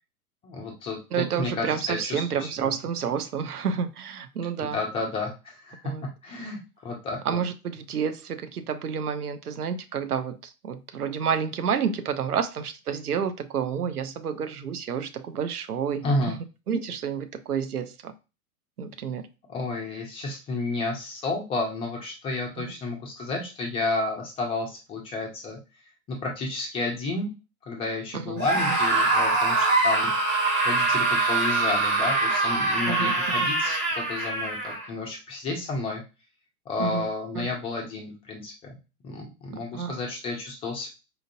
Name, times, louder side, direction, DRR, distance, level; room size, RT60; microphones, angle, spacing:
voice 1, 0.4-2.7 4.6-5.9 6.2-7.4 16.0-16.4 19.5-25.6 26.1-27.3 27.6-30.1 30.6-36.0 36.7-38.5 39.0-40.9, left 3 dB, 15° left, 0.5 m, -31 dB
voice 2, 1.1-4.8 5.8-6.1 7.2-16.1 16.7-18.1 18.8-19.3 22.6-22.7 28.1-28.8 32.9-33.5 36.8-37.1 37.4-37.5 39.7-39.9, right 7 dB, 75° right, 0.7 m, -30 dB
Screaming, 28.4-34.9, right 3 dB, 25° right, 1.4 m, -24 dB
4.4 x 2.5 x 2.6 m
figure-of-eight pair, 100°, 46 cm